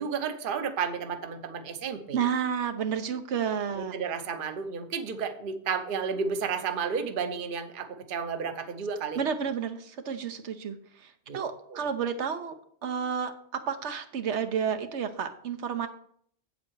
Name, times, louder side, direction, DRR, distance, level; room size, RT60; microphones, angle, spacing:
voice 1, 0.0-2.2 3.8-9.2 11.3-11.4 11.7-11.8, right 6 dB, 55° right, 9 dB, 0.9 m, -32 dB
voice 2, 2.1-3.9 9.2-10.8 11.3-12.5 12.8-13.3 13.7-15.9, right 7 dB, 85° right, 8 dB, 1.1 m, -30 dB
8.0 x 7.8 x 4.6 m, 0.62 s
omnidirectional pair, 1.1 m